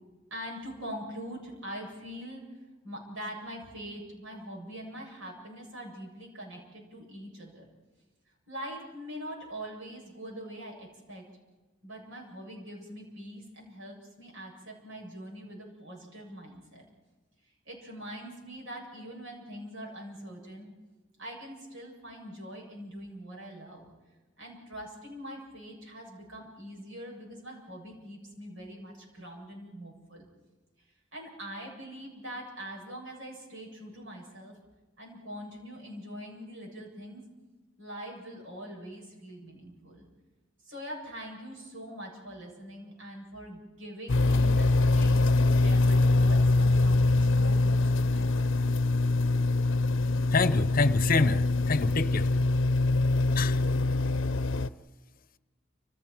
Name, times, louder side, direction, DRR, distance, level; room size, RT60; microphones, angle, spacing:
voice 1, 0.3-2.4 2.8-7.7 8.5-11.2 11.8-16.8 17.6-20.7 21.2-23.9 24.4-30.2 31.1-34.6 35.0-37.2 37.8-40.1 40.7-48.5, equal, 85° right, -1 dB, 7.9 m, -43 dB
sound 1, 44.1-54.7, left 2 dB, 80° left, 0.7 m, -24 dB
voice 2, 50.3-52.3 53.4-53.6, left 3 dB, 50° left, 14 dB, 0.8 m, -27 dB
30.0 x 28.0 x 4.7 m, 1.2 s
head